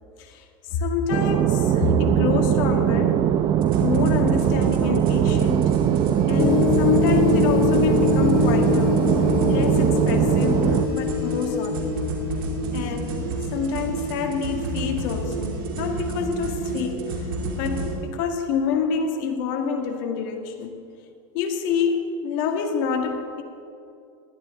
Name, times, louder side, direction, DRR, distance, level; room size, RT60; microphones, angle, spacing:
voice 1, 0.7-3.3 3.8-5.8 6.3-9.1 9.5-12.0 12.7-17.0 17.6-20.8 21.3-23.4, left 6 dB, 65° left, 3 dB, 1.9 m, -27 dB
sound 1, 1.1-10.9, right 10 dB, 45° right, 0.7 m, -21 dB
sound 2, 3.6-18.0, right 2 dB, 80° right, 2.8 m, -30 dB
sound 3, 6.4-13.1, left 13 dB, 35° left, 0.4 m, -25 dB
20.0 x 12.5 x 3.8 m, 2.4 s
supercardioid pair, 110°, 12 cm